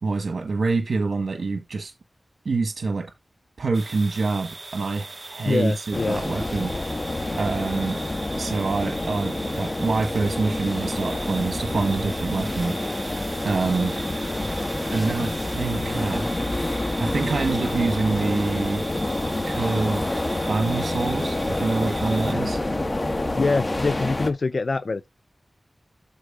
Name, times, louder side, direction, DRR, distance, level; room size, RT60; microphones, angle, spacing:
voice 1, 0.0-1.9 2.4-3.1 3.6-8.0 8.3-12.8 13.4-14.0 14.9-16.3 17.0-18.9 19.5-22.6, right 3 dB, 85° right, 1.4 m, -26 dB
sound 1, 3.7-22.3, right 3 dB, 45° right, 0.9 m, -39 dB
voice 2, 5.5-6.2 23.3-25.1, left 3 dB, 60° left, 0.4 m, -24 dB
sound 2, 5.9-24.3, left 2 dB, 35° left, 1.5 m, -28 dB
13.0 x 4.3 x 3.7 m
wide cardioid pair, 80°, 0 cm